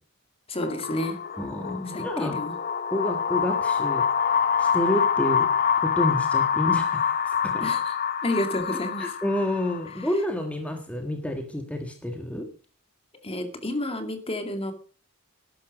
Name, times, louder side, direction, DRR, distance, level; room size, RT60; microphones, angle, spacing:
voice 1, 0.5-1.2 1.9-2.5 7.6-8.0 8.2-9.2 13.2-14.7, left 1 dB, 25° left, 7 dB, 2.1 m, -30 dB
sound 1, 0.6-10.1, left 7 dB, 40° left, 0.9 m, -26 dB
voice 2, 1.4-2.3 2.9-4.1 4.6-5.5 5.8-7.7 9.0-12.5, left 1 dB, 5° left, 4 dB, 1.6 m, -29 dB
12.5 x 11.5 x 5.2 m, 0.41 s
head